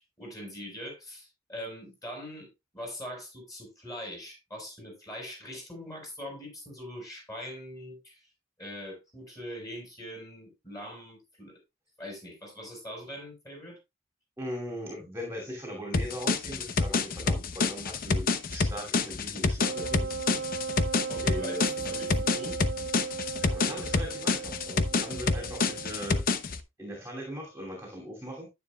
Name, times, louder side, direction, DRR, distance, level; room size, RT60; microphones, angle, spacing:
voice 1, 0.0-2.5 2.7-8.3 8.6-11.6 12.0-13.8 21.1-22.6, equal, 15° left, 5.5 m, -42 dB
voice 2, 14.4-20.4 21.2-21.7 23.4-26.2 26.8-28.5, equal, 10° right, 2.6 m, -39 dB
sound 1, 15.9-26.6, left 4 dB, 45° left, 0.7 m, -28 dB
Wind instrument woodwind instrument, 19.6-26.2, right 5 dB, 55° right, 0.9 m, -37 dB
10.0 x 9.5 x 2.3 m
head